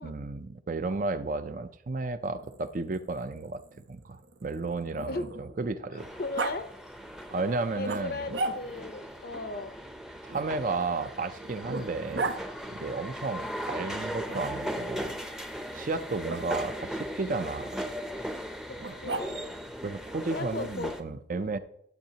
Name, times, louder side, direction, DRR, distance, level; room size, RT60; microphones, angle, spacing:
voice 1, 0.0-3.6 3.9-6.1 7.3-8.3 10.2-12.3 12.7-15.2 15.7-17.7 19.8-21.6, right 3 dB, 45° right, 11 dB, 0.5 m, -33 dB
Growling, 2.3-5.7 6.4-6.6 7.8-8.9 10.3-12.4 14.3-15.0 16.3-16.4 18.8-19.6, right 3 dB, 75° right, 0.8 m, -37 dB
voice 2, 5.9-6.7 7.7-9.8 18.7-19.4 20.3-20.9 21.3-21.6, left 3 dB, 55° left, 10 dB, 0.6 m, -37 dB
sound 1, 6.0-21.0, equal, 5° right, 0.6 m, -38 dB
12.0 x 7.8 x 2.8 m, 0.71 s
head